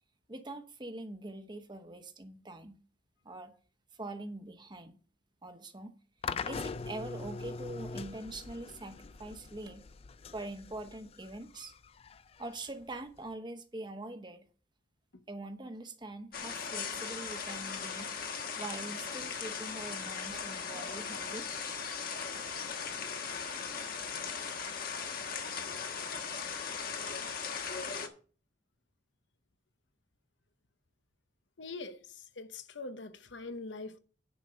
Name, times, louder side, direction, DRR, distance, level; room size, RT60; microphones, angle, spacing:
voice 1, 0.3-2.8 3.2-3.5 4.0-5.0 5.4-5.9 6.5-9.9 10.3-11.7 12.4-14.5 15.3-18.1 18.6-21.5, right 2 dB, 25° right, 1.0 m, -43 dB
sound 1, 6.2-13.3, left 4 dB, 35° left, 0.4 m, -42 dB
sound 2, 16.3-28.1, left 6 dB, 55° left, 1.3 m, -38 dB
voice 2, 31.6-34.0, left 3 dB, 85° left, 0.9 m, -43 dB
10.5 x 4.9 x 6.7 m
head